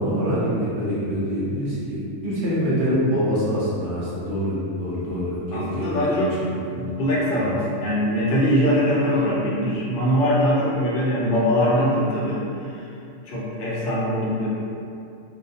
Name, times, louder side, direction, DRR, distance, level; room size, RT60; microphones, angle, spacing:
voice 1, 0.0-6.2 6.4-7.0 7.5-7.6, equal, 50° right, -9 dB, 0.8 m, -25 dB
voice 2, 5.5-6.4 6.7-12.9 13.3-14.5, equal, 55° left, -6 dB, 0.7 m, -22 dB
2.6 x 2.1 x 2.7 m, 2.5 s
omnidirectional pair, 1.3 m